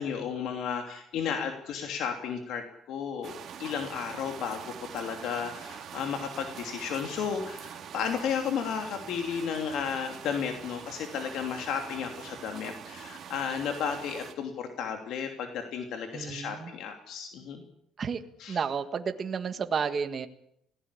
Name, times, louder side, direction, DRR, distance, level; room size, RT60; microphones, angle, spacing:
voice 1, 0.0-17.6 18.4-18.6, left 7 dB, 70° left, 4 dB, 2.9 m, -33 dB
sound 1, 3.2-14.3, right 8 dB, 50° right, 2.4 m, -44 dB
voice 2, 16.1-16.7 18.0-18.2 18.5-20.3, right 6 dB, 35° right, 8 dB, 1.6 m, -31 dB
26.5 x 17.5 x 8.4 m, 0.75 s
cardioid pair, 155°, 0 cm